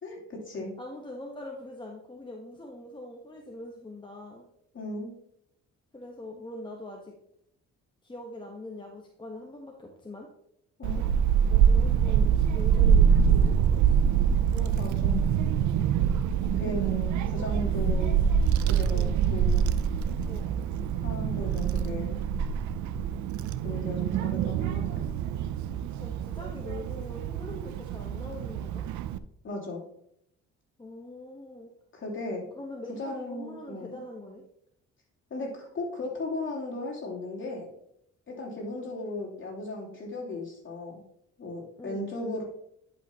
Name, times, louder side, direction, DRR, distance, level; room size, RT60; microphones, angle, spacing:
voice 1, 0.0-0.7 4.7-5.1 10.8-11.1 14.8-15.3 15.7-15.9 16.5-18.2 18.6-19.7 21.0-22.2 23.6-25.1 29.4-29.8 31.9-32.4 33.0-34.0 35.3-37.7 38.3-41.0 41.4-42.4, left 2 dB, 40° left, -4 dB, 3.1 m, -36 dB
voice 2, 0.8-4.4 5.9-7.1 8.0-10.3 11.5-14.0 14.4-15.1 17.3-17.4 18.9-19.2 20.2-20.5 26.0-28.8 30.8-31.7 32.5-34.4 38.5-38.8 41.8-42.0, left 2 dB, 15° left, 0 dB, 1.1 m, -43 dB
Child speech kid speaking / Wind, 10.8-29.2, right 7 dB, 70° right, 0.5 m, -25 dB
11.0 x 5.4 x 2.9 m, 0.74 s
cardioid pair, 90°, 30 cm